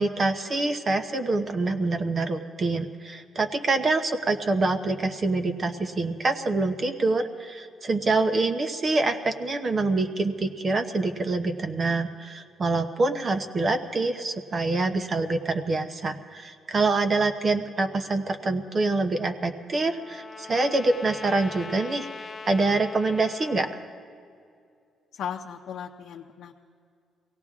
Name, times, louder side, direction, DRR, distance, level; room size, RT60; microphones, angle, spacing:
voice 1, 0.0-23.7, right 3 dB, 40° right, 6 dB, 1.0 m, -26 dB
Trumpet, 19.2-23.9, left 4 dB, 35° left, 1.0 m, -42 dB
voice 2, 25.1-26.5, left 8 dB, 70° left, 1 dB, 0.7 m, -36 dB
22.5 x 17.5 x 3.7 m, 2.4 s
cardioid pair, 90°, 0 cm